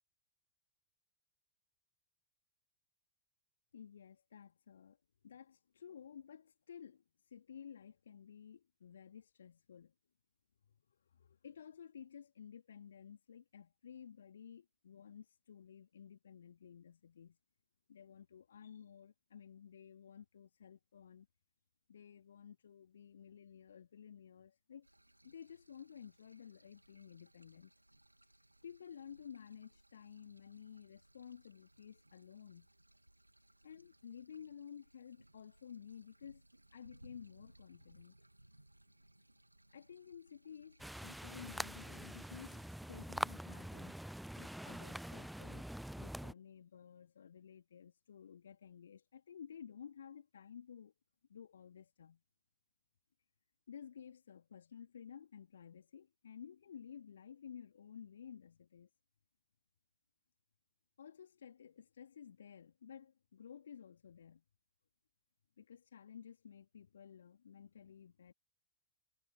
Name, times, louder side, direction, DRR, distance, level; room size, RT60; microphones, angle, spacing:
voice 1, 3.7-5.0 5.2-9.9 10.7-17.4 17.9-21.3 21.9-24.9 25.2-27.7 28.6-32.7 33.6-36.4 36.7-38.1 39.7-44.0 44.3-50.9 51.3-52.2 53.7-58.9 61.0-64.4 65.6-68.3, left 8 dB, 70° left, 2.8 m, -54 dB
sound 1, 24.8-42.8, right 1 dB, 85° right, 1.9 m, -66 dB
sound 2, 40.8-46.3, right 1 dB, ahead, 0.5 m, -44 dB
figure-of-eight pair, 90°, 0 cm